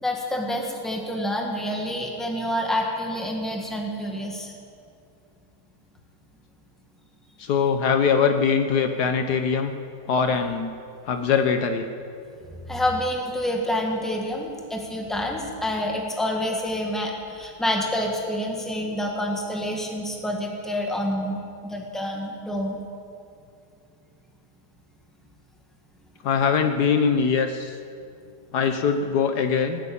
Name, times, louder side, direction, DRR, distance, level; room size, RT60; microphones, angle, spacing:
voice 1, 0.0-4.5 12.7-22.8, left 1 dB, ahead, 0 dB, 1.8 m, -28 dB
voice 2, 7.4-9.7 10.1-10.7 11.0-11.9 26.2-27.8 28.5-29.8, left 6 dB, 70° left, 7 dB, 1.3 m, -22 dB
19.0 x 8.4 x 8.7 m, 2.5 s
omnidirectional pair, 1.9 m